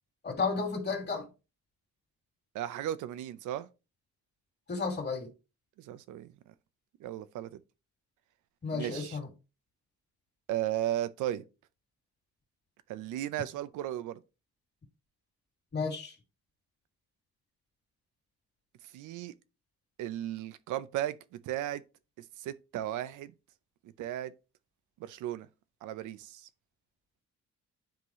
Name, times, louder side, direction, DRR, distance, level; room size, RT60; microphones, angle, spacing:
voice 1, 0.2-1.3 4.7-5.3 8.6-9.3 15.7-16.2, left 4 dB, 35° left, 2.3 m, -32 dB
voice 2, 2.5-3.7 5.9-6.3 7.0-7.6 8.7-9.2 10.5-11.4 12.9-14.2 18.9-19.3 20.0-21.2 21.4-21.8 22.4-23.3 24.0-24.3 25.0-25.5 25.8-26.4, right 12 dB, 90° right, 0.7 m, -35 dB
10.0 x 3.9 x 3.0 m
cardioid pair, 90°, 30 cm